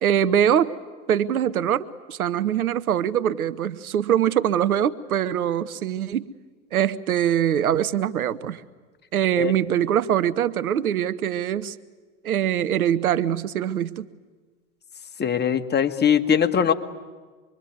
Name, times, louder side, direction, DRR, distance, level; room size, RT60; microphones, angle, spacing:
voice 1, 0.0-0.7 1.1-6.3 6.7-8.6 9.1-11.8 12.2-14.1, right 10 dB, 80° right, 14 dB, 1.0 m, -23 dB
voice 2, 15.2-16.7, left 8 dB, 25° left, 7 dB, 1.8 m, -21 dB
26.0 x 23.0 x 9.5 m, 1.4 s
hypercardioid pair, 85°, 43 cm